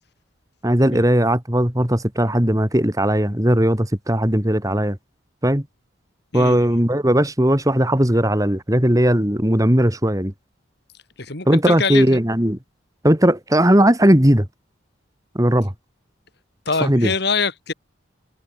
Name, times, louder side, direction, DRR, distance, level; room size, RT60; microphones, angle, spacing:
voice 1, 0.6-5.0 5.4-5.6 6.3-10.3 11.5-12.6 13.0-14.5 15.3-15.7 16.8-17.1, right 1 dB, 15° right, 2.4 m, -17 dB
voice 2, 11.2-12.2 16.7-17.7, left 4 dB, 55° left, 2.7 m, -24 dB
head